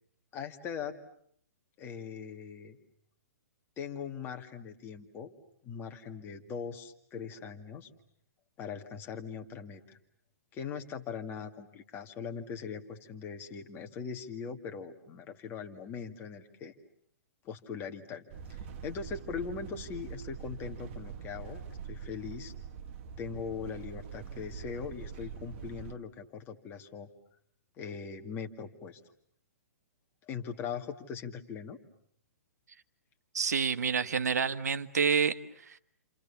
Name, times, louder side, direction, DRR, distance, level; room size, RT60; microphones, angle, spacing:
voice 1, 0.3-0.9 1.8-2.8 3.8-5.3 5.6-7.9 8.6-10.0 10.5-16.7 17.4-22.5 23.2-27.1 27.8-29.0 30.3-31.8, left 6 dB, 25° left, 5 dB, 2.2 m, -40 dB
sound 1, 18.3-25.9, right 7 dB, 40° right, 1.7 m, -44 dB
voice 2, 33.3-35.8, right 6 dB, 85° right, 11 dB, 1.4 m, -29 dB
30.0 x 28.0 x 7.1 m, 0.67 s
hypercardioid pair, 145°, 9 cm